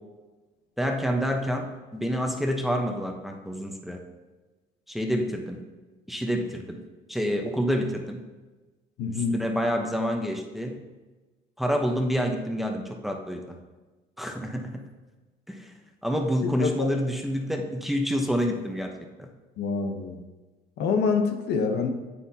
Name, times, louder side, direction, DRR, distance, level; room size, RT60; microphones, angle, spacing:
voice 1, 0.8-4.0 4.9-5.6 6.1-6.8 7.1-8.2 9.1-10.8 11.6-13.6 14.2-14.8 15.5-15.7 16.0-18.9 19.2-19.3, equal, ahead, 2 dB, 0.9 m, -28 dB
voice 2, 9.0-9.3 16.4-16.9 19.6-20.2 20.8-21.9, left 5 dB, 75° left, 5 dB, 1.0 m, -26 dB
9.7 x 8.5 x 2.8 m, 1.2 s
cardioid pair, 110°, 17 cm